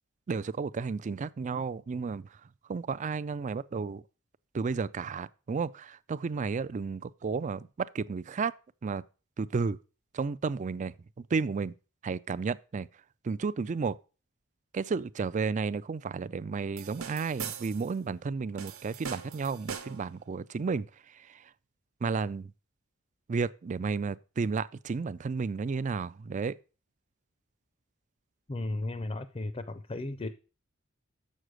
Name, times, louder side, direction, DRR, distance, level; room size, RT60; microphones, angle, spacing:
voice 1, 0.3-2.3 2.7-4.0 4.5-8.5 8.8-9.0 9.4-9.8 10.1-11.7 12.0-12.9 13.2-13.9 14.7-20.9 22.0-22.5 23.3-26.5, right 4 dB, 35° right, 0.4 m, -32 dB
sound 1, 16.8-17.9 18.6-20.1, right 7 dB, 80° right, 1.2 m, -41 dB
voice 2, 28.5-30.3, left 2 dB, 25° left, 0.5 m, -35 dB
7.4 x 6.5 x 6.2 m
head